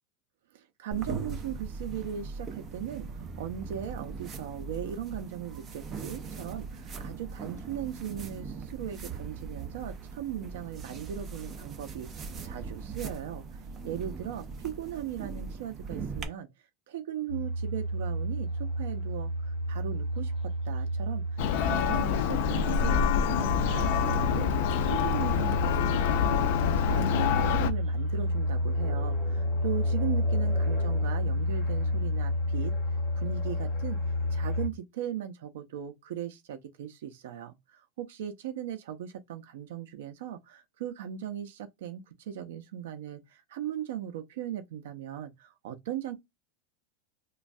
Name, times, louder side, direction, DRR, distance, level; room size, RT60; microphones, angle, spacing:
voice 1, 0.5-16.5 16.9-20.3 20.7-26.5 26.8-32.7 33.2-34.0 34.3-46.1, right 10 dB, 70° right, 0.5 m, -38 dB
sound 1, 0.9-16.2, right 5 dB, 20° right, 0.5 m, -40 dB
sound 2, 17.3-34.7, left 1 dB, 30° left, 0.9 m, -30 dB
Church bell, 21.4-27.7, left 8 dB, 50° left, 0.4 m, -27 dB
3.1 x 2.2 x 2.6 m
supercardioid pair, 175°, 0 cm